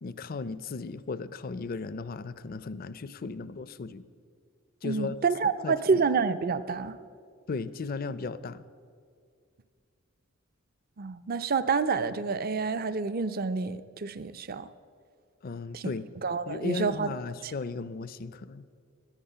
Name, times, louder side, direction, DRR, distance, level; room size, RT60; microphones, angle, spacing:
voice 1, 0.0-4.0 4.8-5.2 5.6-6.0 7.5-8.6 15.4-16.0 16.5-18.7, left 4 dB, 45° left, 15 dB, 0.5 m, -36 dB
voice 2, 4.8-7.0 11.0-14.7 15.7-15.9 16.2-17.1 17.4-17.5, right 5 dB, 45° right, 13 dB, 0.5 m, -28 dB
16.5 x 10.5 x 5.6 m, 2.2 s
head